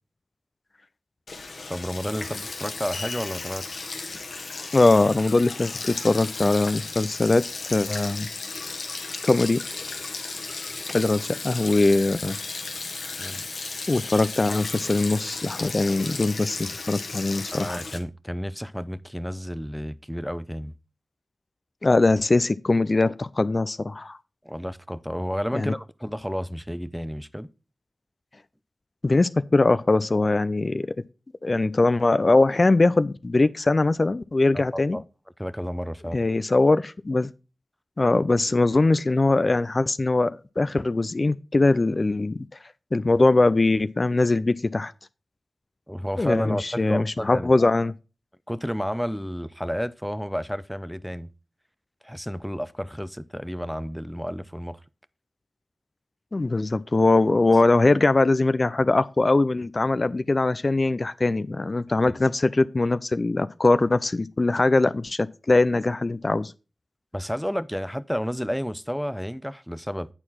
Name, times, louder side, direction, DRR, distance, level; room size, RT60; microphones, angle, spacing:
Sink (filling or washing), 1.3-18.0, left 3 dB, 80° left, 1.2 m, -35 dB
voice 1, 1.7-3.9 13.2-13.4 17.5-20.7 24.4-27.5 34.5-35.0 35.4-36.2 45.9-47.5 48.5-51.3 52.0-54.8 67.1-70.1, equal, ahead, 0.6 m, -31 dB
voice 2, 4.7-7.4 7.7-8.3 9.2-9.6 10.9-12.4 13.9-17.8 21.8-24.2 25.5-25.7 29.0-30.9 31.4-35.0 36.1-37.3 38.0-42.4 42.9-44.9 46.2-47.9 56.3-66.5, left 2 dB, 45° left, 0.4 m, -21 dB
8.7 x 4.5 x 5.7 m
cardioid pair, 40°, 0 cm